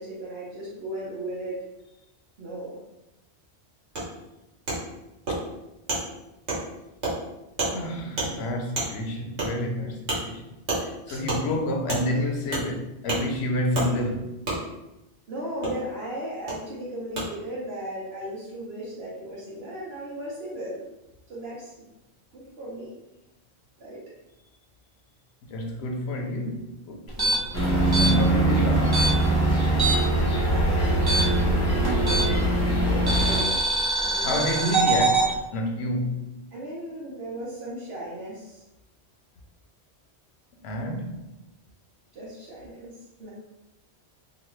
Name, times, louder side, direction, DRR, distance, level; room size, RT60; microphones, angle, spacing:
voice 1, 0.0-1.6 2.4-2.8 11.1-11.2 15.3-20.8 21.3-21.7 22.3-23.0 23.8-24.0 30.5-30.9 32.8-34.6 36.5-38.6 42.1-42.9 43.2-43.3, right 1 dB, 70° right, -7 dB, 1.1 m, -36 dB
Wood, 4.0-4.1 4.7-4.8 5.3-5.4 5.9-6.0 6.5-6.6 7.0-7.1 7.6-7.7 8.2-8.3 8.8-8.9 9.4-9.5 10.1-10.2 10.7-10.8 11.3-11.4 11.9-12.0 12.5-12.7 13.1-13.2 13.7-13.9 14.5-14.6 15.6-15.7 16.5-16.6 17.2-17.3, right 2 dB, 85° right, 1.4 m, -27 dB
voice 2, 7.7-10.4 10.8-14.4 25.4-27.4 28.0-29.1 34.2-36.4 40.6-41.3, left 1 dB, 75° left, 2 dB, 0.8 m, -29 dB
sound 1, 27.1-30.2 30.5-32.5 33.1-35.3, right 2 dB, 25° right, 0.6 m, -24 dB
sound 2, 27.5-33.4, right 1 dB, 15° left, 0.8 m, -22 dB
2.9 x 2.4 x 3.0 m, 0.95 s
omnidirectional pair, 1.1 m